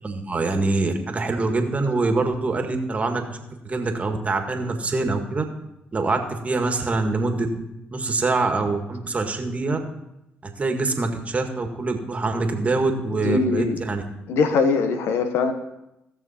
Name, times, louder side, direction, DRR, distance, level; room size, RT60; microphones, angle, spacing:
voice 1, 0.0-3.4 3.6-5.4 5.9-7.5 7.9-9.8 10.4-14.0, right 3 dB, 30° right, 5 dB, 1.8 m, -24 dB
voice 2, 13.2-13.8 14.3-15.5, left 4 dB, 70° left, 8 dB, 1.2 m, -21 dB
16.0 x 6.8 x 4.3 m, 0.88 s
supercardioid pair, 65°, 5 cm